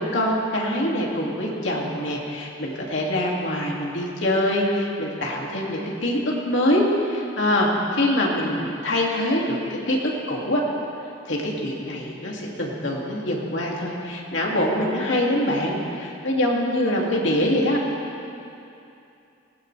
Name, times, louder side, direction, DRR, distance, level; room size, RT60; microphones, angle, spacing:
voice 1, 0.0-10.6 11.3-17.8, left 1 dB, 75° left, -2 dB, 2.5 m, -24 dB
20.0 x 18.5 x 3.4 m, 2.7 s
head